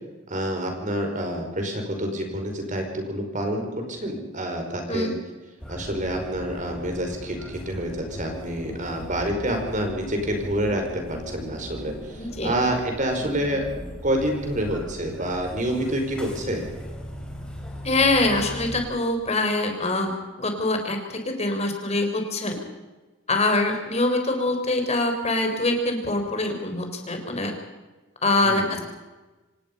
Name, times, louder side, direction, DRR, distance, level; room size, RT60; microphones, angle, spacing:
voice 1, 0.3-5.1 5.7-13.7 14.0-16.7 28.4-28.8, right 1 dB, 40° right, 3 dB, 5.2 m, -28 dB
voice 2, 4.9-5.2 12.2-12.5 17.8-20.1 20.4-22.6 23.3-27.5 28.2-28.8, left 2 dB, 30° left, 4 dB, 4.1 m, -24 dB
sound 1, 5.6-18.8, equal, 5° left, 3.8 m, -38 dB
26.5 x 18.0 x 5.5 m, 1.2 s
head